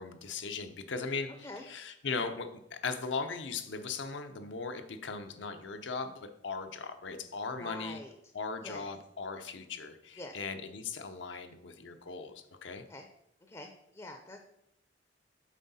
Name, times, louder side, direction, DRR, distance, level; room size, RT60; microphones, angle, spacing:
voice 1, 0.0-8.0 8.3-12.3 12.6-12.8, left 4 dB, 75° left, 7 dB, 0.6 m, -38 dB
voice 2, 7.6-8.1 8.6-8.9 10.2-10.4 12.9-13.1 13.5-14.4, left 2 dB, 20° left, 5 dB, 0.5 m, -45 dB
7.4 x 4.8 x 4.1 m, 0.81 s
head